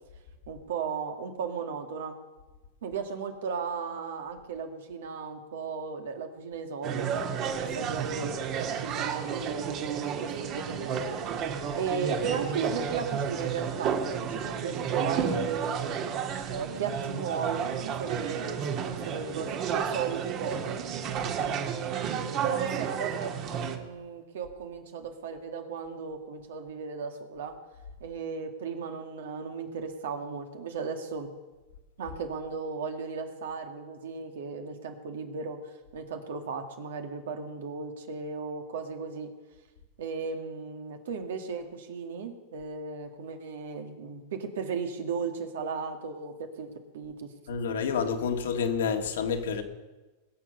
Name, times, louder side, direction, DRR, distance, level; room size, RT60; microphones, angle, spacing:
voice 1, 0.5-2.2 2.8-7.3 7.6-16.1 16.5-20.9 21.4-27.6 28.0-31.3 32.0-39.3 40.0-47.3, right 5 dB, 80° right, 2.1 m, -36 dB
sound 1, 6.8-23.8, right 7 dB, 40° right, 1.5 m, -32 dB
voice 2, 47.5-49.6, left 6 dB, 85° left, 1.8 m, -28 dB
21.0 x 7.5 x 6.8 m
hypercardioid pair, 130°, 0 cm